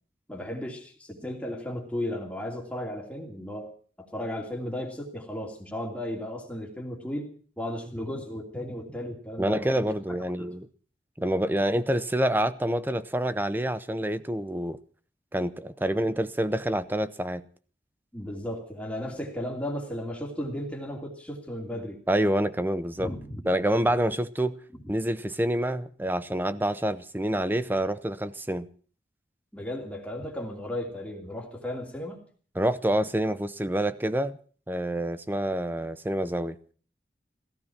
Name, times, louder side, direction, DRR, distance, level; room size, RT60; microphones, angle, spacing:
voice 1, 0.3-3.7 4.1-7.3 7.6-9.9 10.4-10.5 18.1-22.0 23.0-23.4 24.7-24.8 29.5-32.2, left 1 dB, 10° left, 2.9 m, -35 dB
voice 2, 9.4-10.7 11.2-14.8 15.3-17.5 22.1-23.1 23.4-24.5 24.9-28.7 32.6-34.4 34.7-36.6, right 1 dB, 10° right, 0.7 m, -27 dB
16.5 x 15.0 x 6.0 m
head